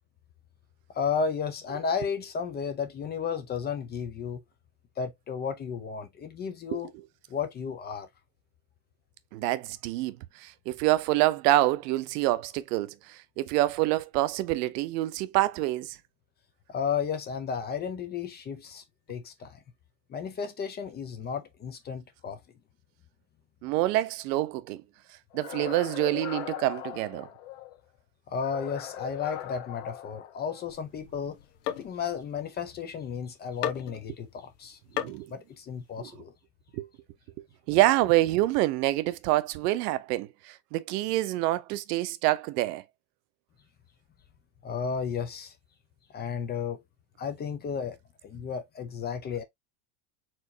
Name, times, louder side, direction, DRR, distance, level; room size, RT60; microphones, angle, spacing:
voice 1, 0.9-4.4 5.0-6.9 7.3-8.1 16.7-19.6 20.1-22.4 28.3-31.4 31.8-34.8 35.3-36.3 44.6-45.5 46.1-46.8 47.2-48.0 48.2-49.4, left 6 dB, 20° left, 0.6 m, -33 dB
voice 2, 9.3-16.0 23.6-24.8 25.3-27.3 35.0-35.3 36.0-36.1 36.7-36.9 37.7-42.8, right 16 dB, 75° right, 0.8 m, -27 dB
sound 1, 25.3-27.8 28.3-30.8, left 13 dB, 55° left, 1.1 m, -39 dB
sound 2, 30.7-33.1 33.6-34.2 35.0-35.3, left 12 dB, 85° left, 1.1 m, -36 dB
4.4 x 4.0 x 2.7 m
supercardioid pair, 155°, 48 cm